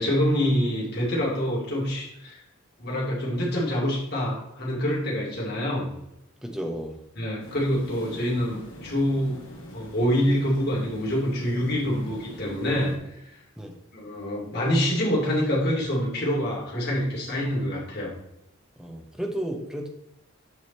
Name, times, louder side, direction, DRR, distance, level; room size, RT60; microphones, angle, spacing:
voice 1, 0.0-2.4 2.8-5.9 7.2-9.4 9.7-13.4 13.9-18.1, equal, 50° left, -4 dB, 2.7 m, -26 dB
voice 2, 6.4-7.0 13.6-13.8 18.8-19.9, right 1 dB, 5° right, 2 dB, 0.8 m, -33 dB
sound 1, 7.4-13.0, left 1 dB, 70° left, 1.8 m, -43 dB
8.0 x 5.1 x 4.2 m, 0.85 s
head